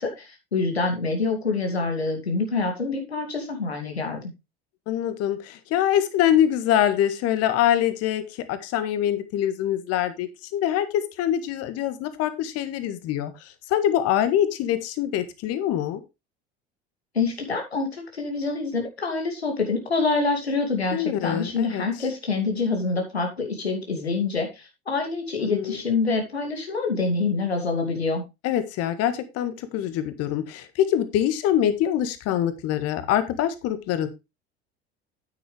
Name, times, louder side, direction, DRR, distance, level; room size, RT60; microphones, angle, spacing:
voice 1, 0.0-4.2 17.1-28.2, left 4 dB, 90° left, 3 dB, 2.6 m, -26 dB
voice 2, 4.9-16.0 20.9-21.8 25.4-25.8 28.4-34.1, left 11 dB, 50° left, 11 dB, 1.7 m, -24 dB
9.4 x 8.6 x 3.3 m, 0.25 s
figure-of-eight pair, 70°, 31 cm